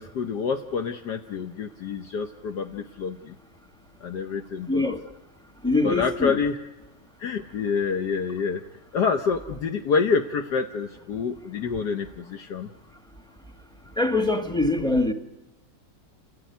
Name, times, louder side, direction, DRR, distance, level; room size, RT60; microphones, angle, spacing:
voice 1, 0.0-3.3 4.0-4.9 5.8-6.6 7.2-8.6 8.9-12.7, left 5 dB, 65° left, 1.6 m, -27 dB
voice 2, 4.7-5.0 5.6-6.4 14.0-15.1, left 2 dB, 5° left, 1.2 m, -23 dB
29.0 x 16.0 x 9.4 m
omnidirectional pair, 2.0 m